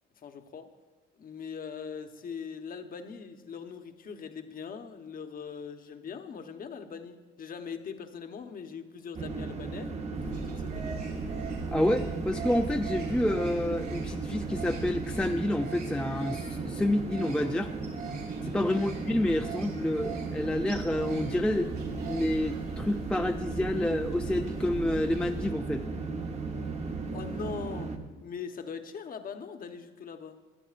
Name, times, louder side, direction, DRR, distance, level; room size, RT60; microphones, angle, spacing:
voice 1, 0.2-0.7 1.2-11.0 18.7-18.9 27.1-27.9 28.2-30.4, left 6 dB, 45° left, 7 dB, 0.9 m, -41 dB
sound 1, 9.1-28.0, right 4 dB, 30° right, 1.0 m, -36 dB
sound 2, 10.1-25.5, right 5 dB, 55° right, 4.2 m, -43 dB
voice 2, 11.7-17.7 18.4-25.8, left 1 dB, 5° left, 5 dB, 0.3 m, -29 dB
23.0 x 8.8 x 2.5 m, 1.4 s
cardioid pair, 120°, 21 cm